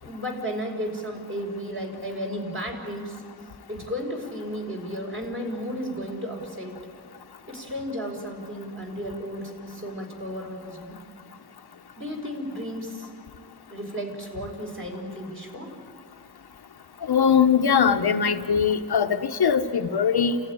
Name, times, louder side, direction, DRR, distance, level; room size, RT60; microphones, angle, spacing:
voice 1, 0.0-3.2 3.7-6.8 7.5-11.0 12.0-13.1 13.7-15.7, equal, 30° right, 0 dB, 5.3 m, -33 dB
voice 2, 17.0-20.4, left 7 dB, 70° left, 5 dB, 1.2 m, -21 dB
30.0 x 15.0 x 9.9 m, 2.1 s
wide cardioid pair, 115°, 40 cm